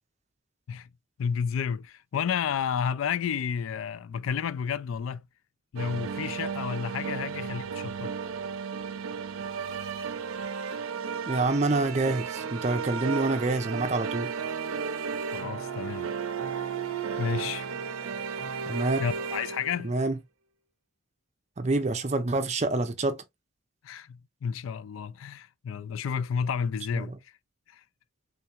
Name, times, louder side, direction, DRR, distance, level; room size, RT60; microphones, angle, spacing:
voice 1, 1.2-5.2 5.7-8.1 15.3-16.1 17.2-17.7 19.0-19.9 23.8-27.1 27.7-27.8, left 7 dB, 80° left, 0.3 m, -31 dB
sound 1, 5.8-19.9, right 6 dB, 90° right, 0.5 m, -34 dB
voice 2, 11.3-14.3 18.7-19.0 19.8-20.2 21.6-23.2 27.0-27.1, right 2 dB, 35° right, 0.5 m, -27 dB
3.5 x 3.3 x 2.9 m
head